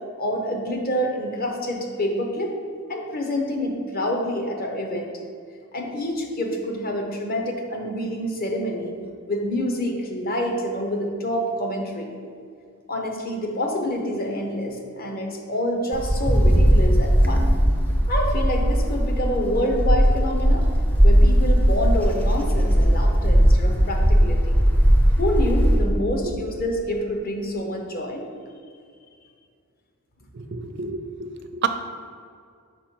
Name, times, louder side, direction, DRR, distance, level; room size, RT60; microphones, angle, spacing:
voice 1, 0.2-2.5 2.9-5.1 5.7-9.0 9.3-12.2 12.9-17.5 18.1-20.6 21.0-24.6 25.2-28.3, left 1 dB, 40° left, 1 dB, 0.9 m, -27 dB
Wind, 15.9-25.9, equal, 5° left, 0.5 m, -18 dB
voice 2, 30.3-31.7, right 5 dB, 50° right, 9 dB, 0.4 m, -29 dB
5.3 x 5.1 x 4.5 m, 2.2 s
head